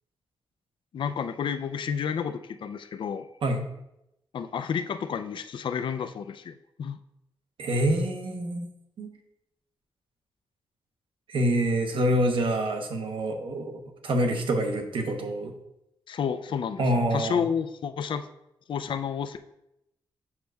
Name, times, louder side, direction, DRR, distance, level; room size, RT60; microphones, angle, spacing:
voice 1, 0.9-3.3 4.3-7.0 16.1-16.9 17.1-18.3 18.7-19.4, left 7 dB, 65° left, 11 dB, 0.4 m, -30 dB
voice 2, 7.6-8.7 9.0-9.1 11.3-15.5 16.8-17.4, right 1 dB, 75° right, 4 dB, 0.9 m, -26 dB
7.1 x 6.2 x 2.3 m, 0.84 s
wide cardioid pair, 115°, 9 cm